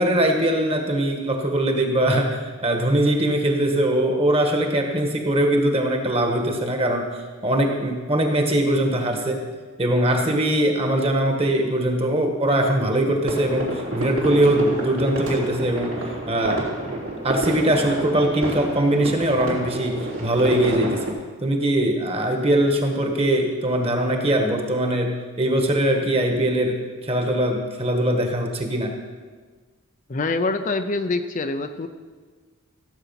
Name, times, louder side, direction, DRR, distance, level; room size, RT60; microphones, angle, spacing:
voice 1, 0.0-7.1 7.4-9.4 9.8-16.0 16.3-17.0 17.2-21.1 21.4-28.9, right 1 dB, 25° right, 3 dB, 1.6 m, -21 dB
sound 1, 13.3-21.1, right 1 dB, 65° right, 3.4 m, -29 dB
voice 2, 30.1-31.9, left 3 dB, 35° left, 8 dB, 0.5 m, -25 dB
15.5 x 8.2 x 5.8 m, 1.4 s
head